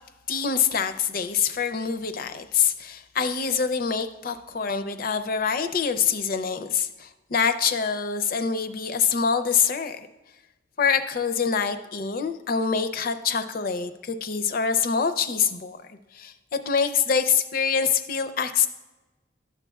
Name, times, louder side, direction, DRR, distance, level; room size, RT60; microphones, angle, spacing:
voice 1, 0.3-10.0 10.8-15.8 16.1-18.7, left 6 dB, 55° left, 9 dB, 0.5 m, -25 dB
12.0 x 7.1 x 2.3 m, 1.1 s
head